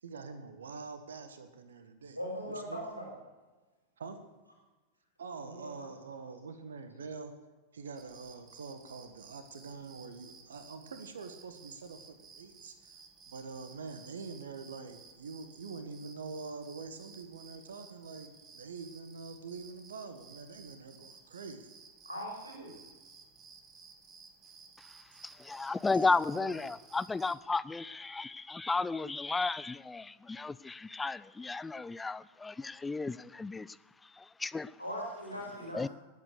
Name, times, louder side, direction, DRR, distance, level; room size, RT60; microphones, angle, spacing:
voice 1, 0.0-2.2 2.5-2.8 4.0-4.2 5.2-7.3 7.7-13.0 13.3-21.7 25.1-25.3 25.9-26.7, right 4 dB, 65° right, 10 dB, 1.3 m, -45 dB
voice 2, 2.2-3.1 5.4-5.7 22.0-22.8 34.8-35.9, equal, 90° right, -1 dB, 4.1 m, -40 dB
sound 1, 8.0-27.4, right 5 dB, 25° right, 2.0 m, -56 dB
voice 3, 25.2-33.8 34.0-34.7 35.7-35.9, left 3 dB, 10° left, 17 dB, 0.4 m, -34 dB
19.5 x 8.5 x 6.6 m, 1.2 s
figure-of-eight pair, 90°, 0 cm